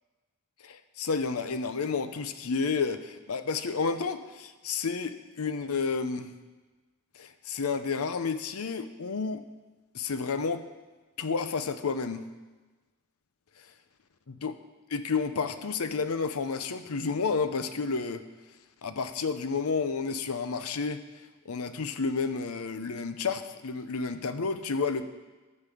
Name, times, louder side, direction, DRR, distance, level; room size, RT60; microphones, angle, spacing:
voice 1, 0.6-6.3 7.1-9.4 9.9-10.7 11.2-12.2 14.3-14.5 14.9-18.2 18.8-21.0 21.5-25.0, left 5 dB, 85° left, 10 dB, 0.7 m, -31 dB
12.0 x 5.5 x 6.9 m, 1.2 s
head